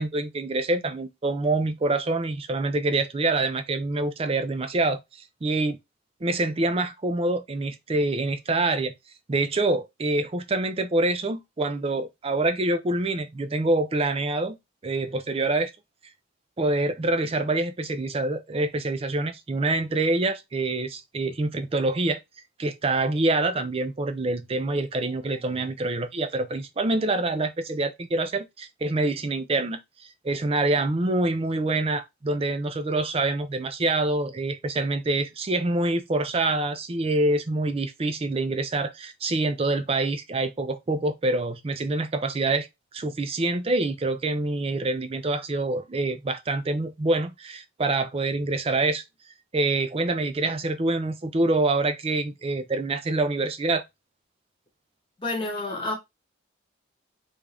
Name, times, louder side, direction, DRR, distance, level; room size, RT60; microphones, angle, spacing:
voice 1, 0.0-5.0 5.4-5.8 6.2-8.9 9.3-14.6 14.8-15.7 16.6-22.2 22.6-29.8 30.2-42.7 42.9-49.0 49.5-53.8, right 2 dB, 30° right, 0.4 m, -26 dB
voice 2, 55.2-55.9, left 2 dB, 25° left, 1.0 m, -29 dB
3.5 x 2.6 x 3.3 m
head